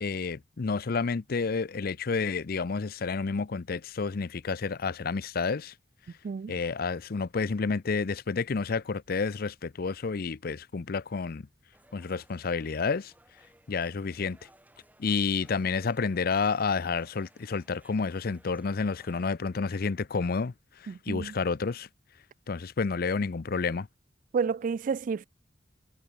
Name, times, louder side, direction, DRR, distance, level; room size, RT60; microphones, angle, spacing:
voice 1, 0.0-5.7 6.5-11.4 11.9-13.1 13.7-14.4 15.0-20.5 21.1-21.9 22.5-23.9, left 4 dB, 55° left, 0.5 m, -30 dB
sound 1, 11.7-19.3, right 1 dB, 10° right, 7.0 m, -61 dB
voice 2, 20.9-21.3 24.3-25.3, right 5 dB, 45° right, 0.3 m, -30 dB
head